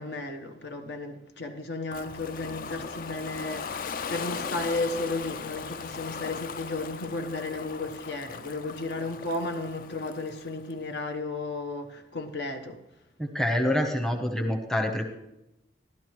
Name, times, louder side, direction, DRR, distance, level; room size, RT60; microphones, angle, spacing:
voice 1, 0.0-12.8, left 2 dB, 70° left, 1.1 m, -34 dB
Ocean, 1.9-10.7, left 6 dB, 50° left, 0.4 m, -38 dB
voice 2, 13.2-15.1, left 1 dB, ahead, 0.9 m, -26 dB
16.0 x 12.0 x 3.1 m
head